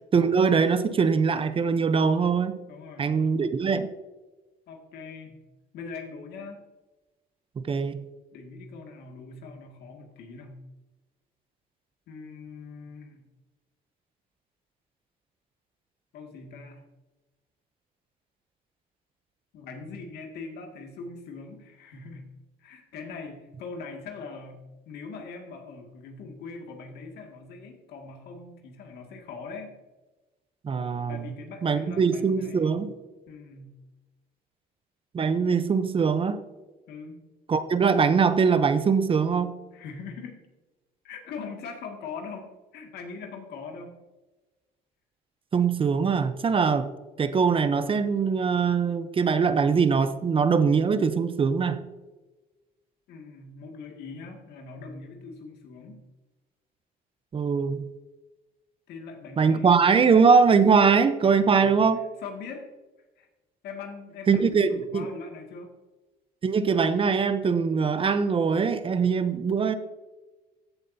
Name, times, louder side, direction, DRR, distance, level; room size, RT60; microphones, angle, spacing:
voice 1, 0.1-2.6 3.0-3.9 7.6-8.0 30.6-31.3 31.6-32.9 35.1-36.4 37.5-39.5 45.5-46.9 47.2-51.8 57.3-57.8 59.4-62.0 64.3-65.1 66.4-69.7, right 5 dB, 30° right, 12 dB, 0.7 m, -22 dB
voice 2, 2.7-3.2 4.7-5.4 5.7-6.6 8.3-10.6 12.1-13.2 16.1-16.8 19.5-22.3 22.6-29.8 31.1-32.8 33.3-33.7 36.9-37.2 39.7-40.4 41.0-43.9 53.1-56.0 58.9-59.8 61.3-61.8 62.2-62.7 63.2-63.3 63.6-65.7, left 4 dB, 75° left, 2 dB, 2.1 m, -41 dB
15.0 x 7.3 x 2.8 m, 1.2 s
cardioid pair, 110°, 17 cm